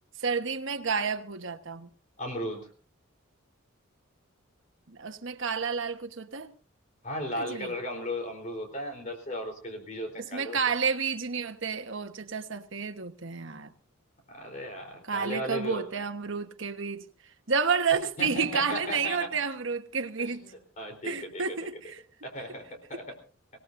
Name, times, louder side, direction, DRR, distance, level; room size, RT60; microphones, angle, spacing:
voice 1, 0.2-1.9 4.9-6.5 7.3-7.7 10.2-13.7 15.1-17.0 17.5-20.5 21.0-22.0, right 5 dB, 60° right, 1.3 m, -30 dB
voice 2, 2.2-2.7 7.0-10.8 14.3-16.0 18.2-19.3 20.2-21.6 22.2-23.0, left 1 dB, 35° left, 3.9 m, -36 dB
25.5 x 18.0 x 2.7 m
head